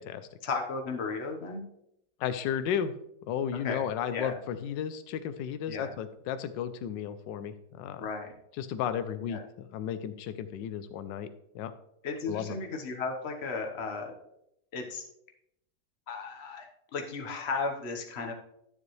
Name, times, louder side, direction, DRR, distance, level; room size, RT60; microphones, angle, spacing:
voice 1, 0.4-1.6 3.6-3.8 4.1-4.4 5.7-5.9 8.0-8.3 9.2-9.4 12.0-14.1 14.7-15.0 16.1-16.7 16.9-18.3, left 4 dB, 40° left, 3 dB, 1.3 m, -34 dB
voice 2, 2.2-2.9 3.3-8.0 8.6-11.3 11.5-11.7 12.3-12.5, left 8 dB, 80° left, 11 dB, 1.3 m, -33 dB
12.0 x 7.3 x 3.2 m, 0.78 s
omnidirectional pair, 2.0 m